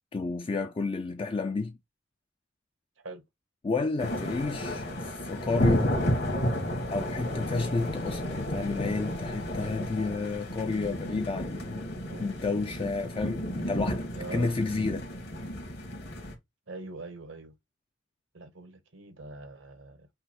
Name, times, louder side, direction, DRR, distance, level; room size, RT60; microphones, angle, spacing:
voice 1, 0.1-1.8 3.6-6.0 6.9-11.9 12.2-15.1, left 3 dB, 30° left, 0.3 m, -31 dB
sound 1, 4.0-16.3, equal, 60° left, 1.6 m, -32 dB
voice 2, 14.1-14.6 16.7-17.5 18.3-20.1, right 3 dB, 85° right, 1.1 m, -43 dB
5.5 x 2.0 x 4.2 m
head